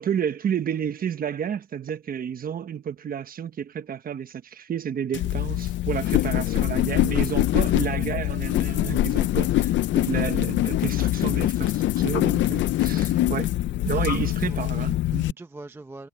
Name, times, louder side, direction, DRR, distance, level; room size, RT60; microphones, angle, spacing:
voice 1, 0.0-13.5 13.8-15.3, right 8 dB, 25° right, 1.1 m, -31 dB
sound 1, 5.1-15.3, left 14 dB, 30° left, 0.5 m, -24 dB
voice 2, 13.2-14.6 15.4-16.1, right 2 dB, 5° right, 0.7 m, -44 dB
cardioid pair, 155°, 37 cm